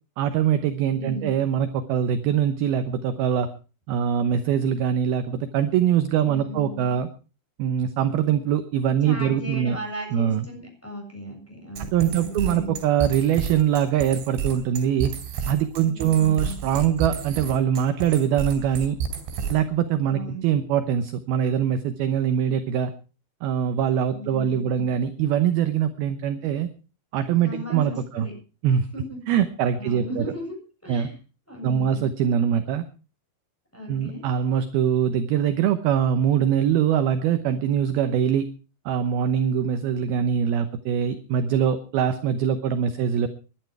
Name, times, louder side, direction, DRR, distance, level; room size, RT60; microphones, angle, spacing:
voice 1, 0.2-3.5 3.9-7.1 7.6-9.8 10.1-10.5 11.9-15.1 15.5-19.0 19.5-22.9 23.4-26.7 27.1-28.3 28.6-28.9 29.3-30.4 30.9-31.1 31.6-32.8 33.9-38.5 38.9-43.3, right 9 dB, 75° right, 9 dB, 2.4 m, -23 dB
voice 2, 0.9-1.4 6.2-7.0 9.0-12.7 15.8-16.6 20.1-20.5 24.1-24.9 27.4-28.3 28.9-29.2 29.8-30.6 30.8-31.1 31.5-32.0 33.7-34.2, right 1 dB, 5° left, 1 dB, 7.0 m, -36 dB
sound 1, 11.8-19.7, right 7 dB, 90° right, 6.0 m, -31 dB
21.0 x 11.5 x 4.7 m, 0.36 s
omnidirectional pair, 5.4 m